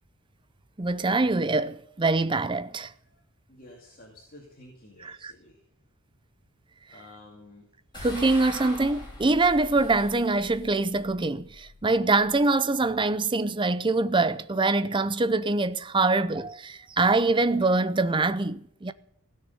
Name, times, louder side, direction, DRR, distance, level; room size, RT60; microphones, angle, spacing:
voice 1, 0.8-2.9 5.0-5.3 7.9-18.9, right 3 dB, 20° right, 0.6 m, -24 dB
voice 2, 3.5-5.6 6.9-7.7 16.8-16.9, left 1 dB, 40° left, 2.5 m, -51 dB
sound 1, 7.9-13.3, left 1 dB, 20° left, 5.3 m, -43 dB
16.0 x 6.5 x 9.7 m
head